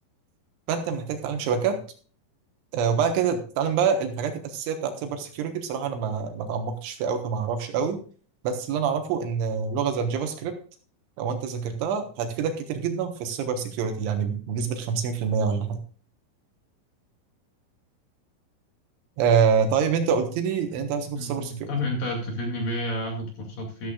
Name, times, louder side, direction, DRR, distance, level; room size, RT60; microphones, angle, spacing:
voice 1, 0.7-1.8 2.7-8.0 8.4-10.5 11.2-15.8 19.2-21.7, right 6 dB, 70° right, 6 dB, 3.4 m, -26 dB
voice 2, 21.1-23.9, left 1 dB, 50° left, 2 dB, 3.3 m, -30 dB
13.5 x 13.0 x 2.4 m, 0.40 s
omnidirectional pair, 5.9 m